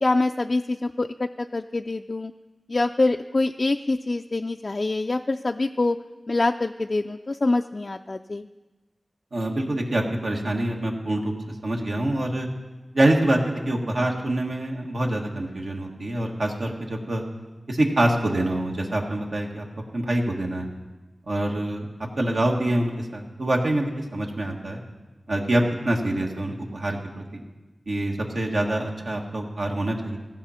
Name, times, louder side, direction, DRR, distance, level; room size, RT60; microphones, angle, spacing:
voice 1, 0.0-2.3 2.7-6.0 6.3-8.5, left 2 dB, 50° left, 5 dB, 0.3 m, -25 dB
voice 2, 9.3-11.3 11.6-12.5 12.9-17.2 17.7-19.6 19.9-20.7 21.3-21.9 22.2-24.8 25.3-27.4 27.9-30.2, right 1 dB, 75° right, 0 dB, 1.5 m, -25 dB
15.5 x 7.4 x 5.7 m, 1.2 s
wide cardioid pair, 65°, 0 cm